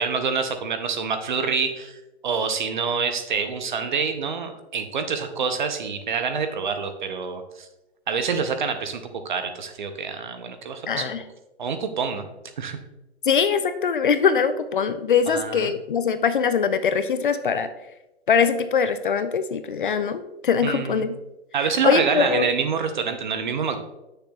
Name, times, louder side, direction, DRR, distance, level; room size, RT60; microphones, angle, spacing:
voice 1, 0.0-7.7 8.1-11.1 11.6-12.3 12.6-12.8 15.3-15.7 20.6-21.1 21.5-23.8, right 5 dB, 45° right, 8 dB, 0.7 m, -26 dB
voice 2, 10.9-11.2 13.3-17.7 18.3-21.2 21.8-22.5, left 6 dB, 50° left, 11 dB, 0.4 m, -22 dB
8.1 x 6.5 x 2.3 m, 0.96 s
hypercardioid pair, 175°, 34 cm